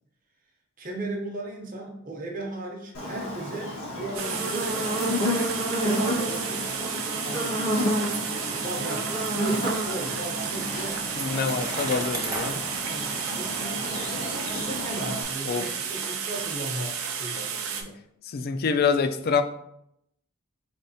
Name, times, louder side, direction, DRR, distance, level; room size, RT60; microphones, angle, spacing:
voice 1, 0.8-5.1 5.7-6.7 7.2-7.6 8.6-11.0 12.8-17.9 18.4-18.5, right 1 dB, 40° right, 0 dB, 0.9 m, -36 dB
Buzz, 2.9-15.2, equal, 80° left, 1.4 m, -30 dB
sound 1, 4.1-17.8, right 7 dB, 85° right, 0.5 m, -32 dB
Bicycle, 10.0-14.8, right 2 dB, 15° right, 0.5 m, -38 dB
voice 2, 11.2-12.6 15.5-15.6 18.2-19.4, left 5 dB, 45° left, 9 dB, 0.3 m, -26 dB
4.2 x 3.4 x 2.7 m, 0.75 s
head